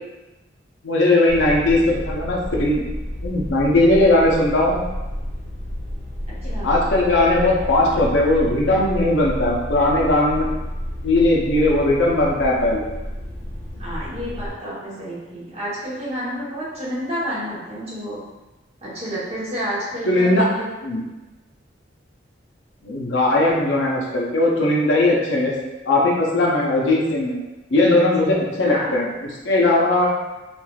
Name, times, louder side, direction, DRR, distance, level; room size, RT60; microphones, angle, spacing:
voice 1, 0.8-2.8 3.2-4.8 6.6-10.5 11.0-12.9 20.1-20.5 20.8-21.0 22.8-25.5 25.9-27.3 27.7-29.1 29.4-30.1, left 2 dB, 75° left, -3 dB, 0.6 m, -18 dB
sound 1, 1.3-14.5, equal, 10° left, 1.1 m, -30 dB
voice 2, 6.4-6.7 13.8-18.2 18.8-20.7 28.0-28.3 28.6-29.0, equal, 35° right, -9 dB, 1.0 m, -30 dB
3.2 x 2.4 x 2.3 m, 1.1 s
head